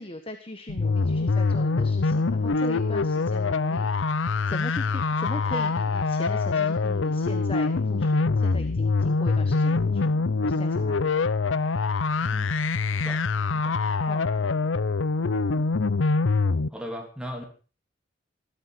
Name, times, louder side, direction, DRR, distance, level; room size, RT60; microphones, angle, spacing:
voice 1, 0.0-4.1 4.5-11.1 14.1-14.5, left 1 dB, 30° left, 8 dB, 1.4 m, -39 dB
sound 1, 0.7-16.7, left 3 dB, 80° left, 0.7 m, -24 dB
voice 2, 12.2-12.5 12.9-13.2 13.5-13.8 16.7-17.4, equal, 5° right, 2 dB, 2.9 m, -38 dB
16.0 x 13.5 x 5.9 m, 0.38 s
head